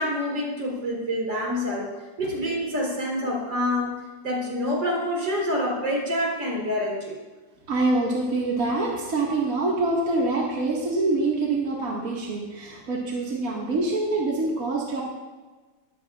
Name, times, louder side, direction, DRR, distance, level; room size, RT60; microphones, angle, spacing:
voice 1, 0.0-1.9 2.2-4.0 4.2-7.2, left 1 dB, 70° right, -2 dB, 4.9 m, -27 dB
voice 2, 7.7-15.0, right 2 dB, 45° right, -4 dB, 2.4 m, -25 dB
22.0 x 14.0 x 2.5 m, 1.3 s
omnidirectional pair, 2.1 m